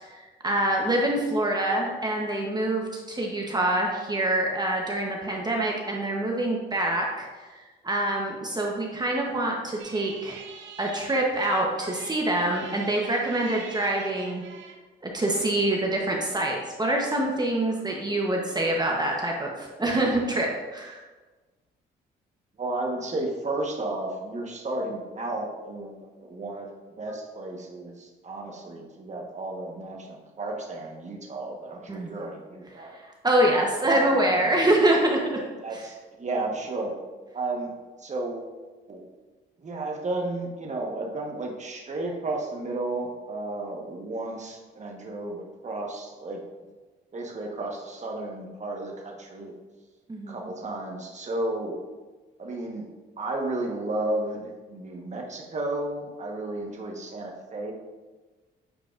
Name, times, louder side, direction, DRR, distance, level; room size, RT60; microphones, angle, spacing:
voice 1, 0.0-10.4 10.8-14.4 15.0-21.0 31.9-32.1 32.8-35.4 35.7-35.8 50.1-50.4, right 1 dB, 20° right, -1 dB, 1.0 m, -25 dB
sound 1, 9.8-14.8, right 6 dB, 70° right, 0.8 m, -45 dB
voice 2, 22.6-26.7 27.0-33.0 33.9-34.5 35.6-36.9 37.3-37.7 38.0-38.5 38.9-39.0 39.6-46.4 47.1-49.5 50.3-51.8 52.4-52.9 53.2-57.7, right 2 dB, 35° right, 0 dB, 1.3 m, -33 dB
8.9 x 4.7 x 2.6 m, 1.3 s
cardioid pair, 90°, 20 cm